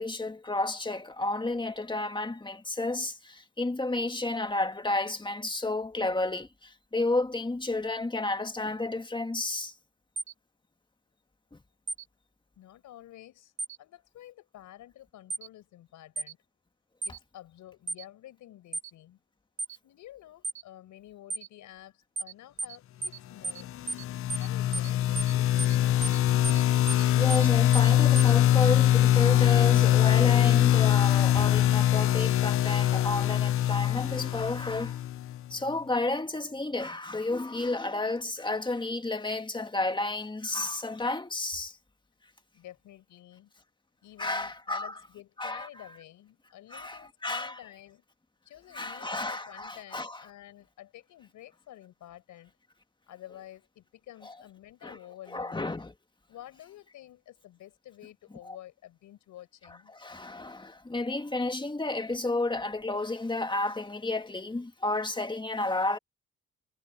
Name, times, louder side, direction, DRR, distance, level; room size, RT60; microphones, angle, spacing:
voice 1, 0.0-9.7 11.5-11.6 27.2-35.0 35.5-41.8 44.2-44.9 45.4-45.7 46.7-47.6 48.7-50.2 54.3-54.4 54.8-55.0 55.3-55.9 58.4-58.6 59.9-66.0, left 2 dB, 15° left, 2.0 m, -31 dB
sound 1, 10.2-10.3 11.9-12.0 13.6-13.8 15.3-15.5 16.2-16.3 17.0-17.2 17.9-18.0 18.7-18.9 19.6-19.8 20.4-20.6 21.3-21.5 22.2-22.3 22.6-22.8 23.0-23.2 23.4-23.6 23.9-24.0 24.3-24.5 24.7-24.9 25.2-25.3 25.6-25.8 26.0-26.2 26.4-26.6 26.9-27.0 27.3-27.5 27.7-27.9 28.2-28.3, right 3 dB, 40° right, 1.4 m, -34 dB
voice 2, 12.6-13.5 13.8-16.4 17.0-19.2 19.8-23.7 24.4-25.5 42.5-43.5 44.0-48.0 48.4-52.5 53.1-55.6 56.3-59.9, left 13 dB, 80° left, 4.8 m, -50 dB
sound 2, 23.6-35.4, left 12 dB, 50° left, 0.5 m, -23 dB
cardioid pair, 90°, 30 cm